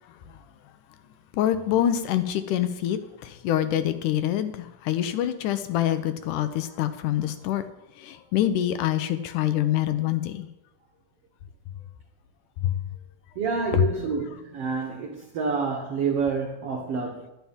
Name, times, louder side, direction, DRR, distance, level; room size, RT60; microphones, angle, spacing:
voice 1, 1.3-7.6 8.0-10.5 12.6-12.8 13.7-13.8, left 11 dB, 75° left, 10 dB, 2.0 m, -25 dB
voice 2, 13.3-17.3, right 5 dB, 65° right, 1 dB, 1.6 m, -28 dB
11.5 x 10.5 x 3.5 m, 0.92 s
omnidirectional pair, 3.8 m